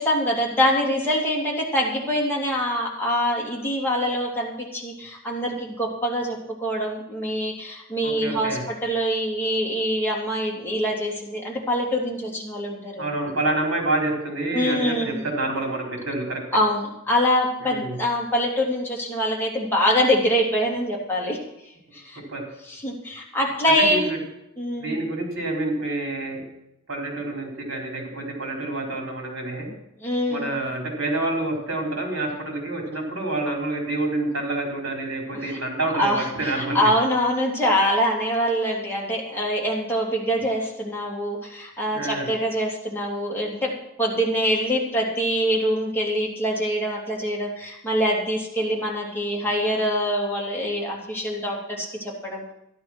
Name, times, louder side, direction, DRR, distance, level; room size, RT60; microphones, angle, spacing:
voice 1, 0.0-13.1 14.5-15.2 16.5-21.4 21.9-22.2 22.7-24.1 24.6-25.0 30.0-30.4 35.3-35.6 36.0-43.7 44.0-52.5, equal, 10° left, -3 dB, 3.1 m, -24 dB
voice 2, 8.0-8.6 13.0-16.4 17.6-18.0 22.3-22.4 23.8-24.2 24.8-26.4 26.9-29.7 30.3-36.8 41.9-42.3, right 2 dB, 65° right, 0 dB, 4.6 m, -28 dB
12.5 x 11.0 x 6.2 m, 0.84 s
head